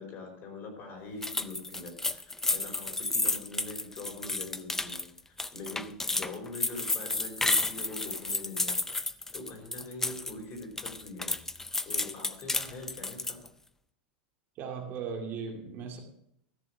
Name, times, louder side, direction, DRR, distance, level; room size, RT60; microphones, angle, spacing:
voice 1, 0.0-5.0 5.3-8.8 9.3-11.4 11.8-13.4, left 3 dB, 40° left, 2 dB, 4.9 m, -43 dB
sound 1, 1.2-10.3 10.6-13.5, left 2 dB, 5° left, 0.4 m, -32 dB
voice 2, 14.6-16.0, right 5 dB, 40° right, 1 dB, 2.2 m, -37 dB
14.0 x 6.5 x 6.5 m, 0.74 s
supercardioid pair, 130°, 5 cm